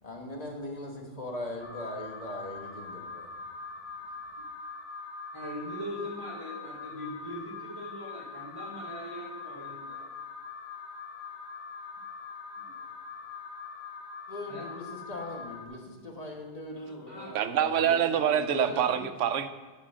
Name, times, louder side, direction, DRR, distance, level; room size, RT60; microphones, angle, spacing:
voice 1, 0.0-3.3 4.4-4.5 14.3-18.8, left 1 dB, 35° left, 1 dB, 1.4 m, -40 dB
Alarm, 1.6-15.7, left 5 dB, 60° left, 1.1 m, -42 dB
voice 2, 5.3-10.1 12.5-12.7 14.5-14.6 17.1-17.3 18.5-18.9, equal, 20° right, -8 dB, 2.8 m, -41 dB
voice 3, 17.3-19.5, right 9 dB, 80° right, 11 dB, 1.0 m, -26 dB
11.0 x 4.9 x 6.2 m, 1.4 s
omnidirectional pair, 1.2 m